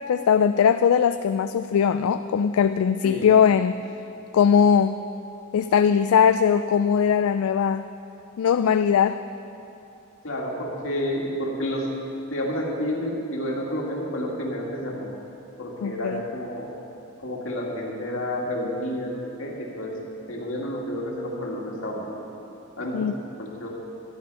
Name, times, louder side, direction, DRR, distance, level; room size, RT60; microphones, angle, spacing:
voice 1, 0.0-3.8 4.3-5.0 5.5-7.9 8.4-9.2 15.8-16.2 22.9-23.1, left 7 dB, 90° left, 10 dB, 0.3 m, -20 dB
voice 2, 10.2-11.9 12.3-15.1 15.6-16.7 17.2-20.0 20.3-22.1 22.8-23.1 23.4-23.7, equal, 70° left, -2 dB, 2.2 m, -30 dB
12.5 x 11.5 x 5.5 m, 2.8 s
head